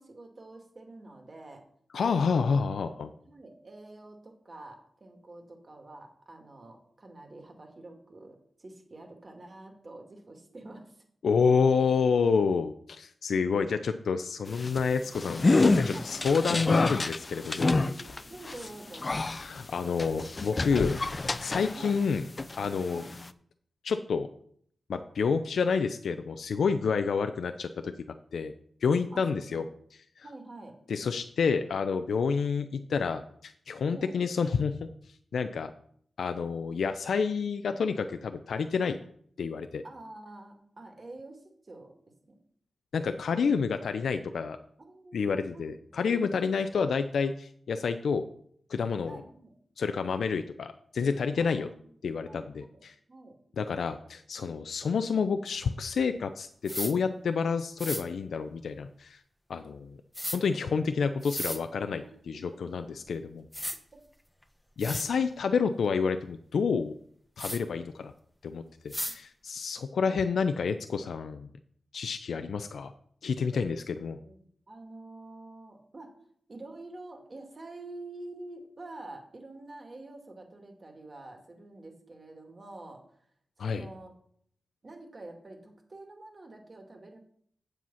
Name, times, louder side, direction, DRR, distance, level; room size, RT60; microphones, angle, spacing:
voice 1, 0.0-1.6 2.9-11.0 15.9-16.1 17.6-19.1 21.7-21.9 22.9-23.1 29.1-29.7 30.2-30.7 33.9-34.1 39.8-41.9 42.3-42.4 44.8-45.6 45.9-46.0 46.4-46.5 49.0-49.5 51.4-52.0 52.2-52.8 53.1-53.4 62.0-62.6 63.9-64.0 73.4-76.1 76.5-83.0 83.6-84.1 84.8-87.2, right 2 dB, 45° right, 3 dB, 2.4 m, -47 dB
voice 2, 1.9-3.1 11.2-17.8 19.3-21.0 21.4-22.2 22.6-23.0 23.8-24.3 24.9-27.9 28.3-28.5 28.8-29.6 30.2-30.3 30.9-34.7 35.3-35.7 36.2-39.0 39.4-39.8 42.9-44.6 45.1-48.2 48.7-49.2 49.8-51.7 52.0-52.9 53.6-59.2 59.5-60.0 60.3-63.4 64.8-66.9 67.4-68.1 68.4-71.5 71.9-72.9 73.2-74.2 83.6-83.9, left 5 dB, 80° left, 8 dB, 0.5 m, -29 dB
sound 1, 14.5-22.1 22.4-23.3, left 3 dB, 35° left, 0.6 m, -28 dB
sound 2, 56.7-56.9 57.8-58.0 60.1-60.4 61.2-61.6 63.1-63.2 63.5-63.8 64.4-64.5 64.8-65.1 67.4-67.6 68.9-69.2, left 1 dB, 5° left, 1.4 m, -34 dB
7.8 x 7.5 x 5.7 m, 0.63 s
cardioid pair, 60°, 0 cm